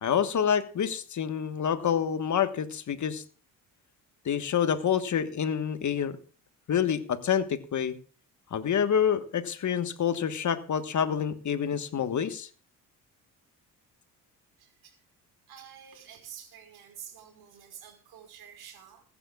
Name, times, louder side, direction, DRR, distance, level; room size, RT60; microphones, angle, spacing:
voice 1, 0.0-3.2 4.2-6.2 6.7-7.9 8.5-12.5, left 8 dB, 50° left, 10 dB, 1.4 m, -27 dB
voice 2, 15.5-19.0, right 9 dB, 70° right, 5 dB, 5.0 m, -48 dB
21.5 x 11.5 x 2.4 m, 0.41 s
supercardioid pair, 75°, 38 cm